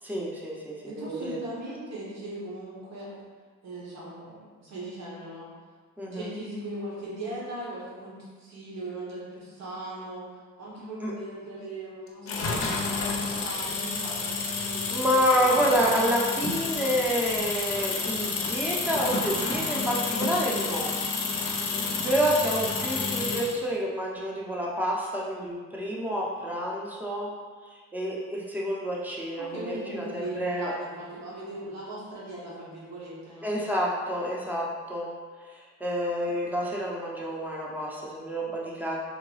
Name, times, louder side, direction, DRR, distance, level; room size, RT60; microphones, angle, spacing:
voice 1, 0.0-1.4 6.0-6.3 11.0-11.1 14.9-21.0 21.5-27.3 27.7-30.7 33.4-35.1 35.4-39.0, equal, 5° right, -4 dB, 0.7 m, -28 dB
voice 2, 0.8-3.1 3.6-5.5 6.1-15.9 29.4-33.5, right 1 dB, 60° right, -6 dB, 1.2 m, -39 dB
sound 1, 12.3-23.6, left 4 dB, 50° left, 0.6 m, -30 dB
3.7 x 2.2 x 3.2 m, 1.5 s
cardioid pair, 90°, 30 cm